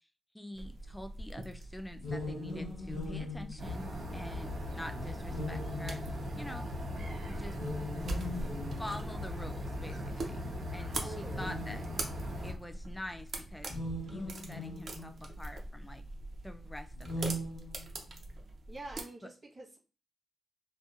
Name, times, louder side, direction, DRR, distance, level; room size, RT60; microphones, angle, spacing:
voice 1, 0.3-6.7 7.2-7.6 8.8-10.4 10.7-11.9 12.4-13.7 14.1-16.0 16.4-17.4 19.2-19.3, left 1 dB, 10° left, 7 dB, 0.3 m, -46 dB
sound 1, 0.5-19.0, right 2 dB, 65° right, 0.5 m, -43 dB
sound 2, 1.9-4.4 5.3-6.5 7.5-9.3 10.2-10.3 11.2-12.3 13.6-15.4 16.9-18.2, left 1 dB, 90° left, 0.8 m, -40 dB
sound 3, 3.6-12.5, left 1 dB, 80° right, 1.2 m, -40 dB
voice 2, 7.0-7.4 10.9-11.5 18.7-19.8, right 2 dB, 35° right, -1 dB, 0.9 m, -47 dB
2.8 x 2.1 x 2.3 m, 0.35 s
cardioid pair, 100°, 0 cm